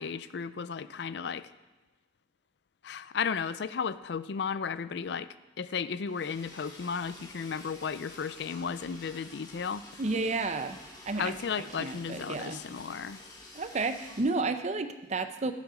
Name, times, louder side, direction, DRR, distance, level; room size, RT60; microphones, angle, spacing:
voice 1, 0.0-1.5 2.8-5.3 5.6-9.8 11.2-13.2, left 6 dB, 65° left, 15 dB, 0.4 m, -34 dB
Liquid, 6.1-14.2, left 2 dB, 20° left, 1.8 m, -50 dB
voice 2, 10.0-10.8 11.1-11.3 11.8-12.6 13.5-15.5, right 3 dB, 40° right, 10 dB, 0.6 m, -31 dB
11.5 x 8.3 x 5.0 m, 1.1 s
head